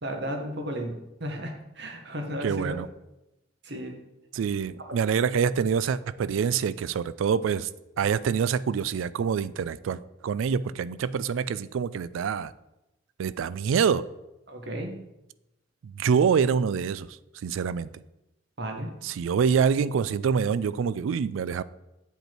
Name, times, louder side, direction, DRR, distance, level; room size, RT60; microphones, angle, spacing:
voice 1, 0.0-2.8 3.6-3.9 14.5-14.9 18.6-18.9, equal, 60° right, 4 dB, 1.2 m, -34 dB
voice 2, 2.4-2.9 4.3-7.7 8.0-12.5 13.2-14.0 15.8-17.9 19.0-21.6, right 6 dB, 85° right, 17 dB, 0.3 m, -26 dB
7.9 x 5.4 x 4.4 m, 0.92 s
head